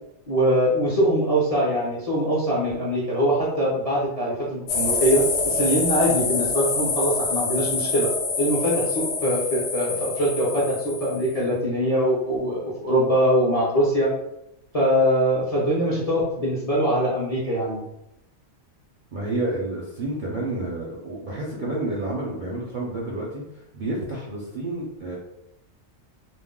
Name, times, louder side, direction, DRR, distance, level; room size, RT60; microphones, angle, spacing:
voice 1, 0.3-8.1 8.4-14.1 14.7-17.8, equal, 40° left, -7 dB, 0.5 m, -22 dB
sound 1, 4.7-11.4, left 4 dB, 70° left, 0.9 m, -26 dB
voice 2, 19.1-25.2, right 2 dB, 55° right, -5 dB, 0.5 m, -30 dB
2.4 x 2.0 x 3.5 m, 0.84 s
omnidirectional pair, 1.4 m